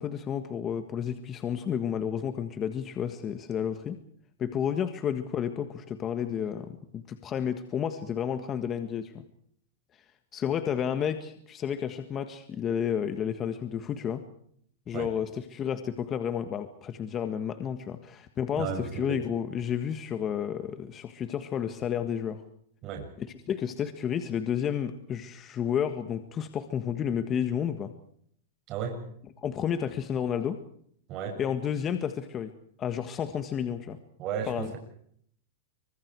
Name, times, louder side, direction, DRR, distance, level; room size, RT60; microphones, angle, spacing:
voice 1, 0.0-4.0 4.4-9.2 10.3-14.2 14.9-22.4 23.2-27.9 29.4-30.6 31.4-32.5 32.8-34.0 34.5-34.7, left 8 dB, 25° left, 9 dB, 1.7 m, -31 dB
voice 2, 18.6-19.2 22.8-23.1 28.7-29.0 31.1-31.4 34.2-34.8, right 7 dB, 35° right, 3 dB, 6.9 m, -34 dB
27.5 x 24.5 x 4.8 m, 0.66 s
supercardioid pair, 140°, 0 cm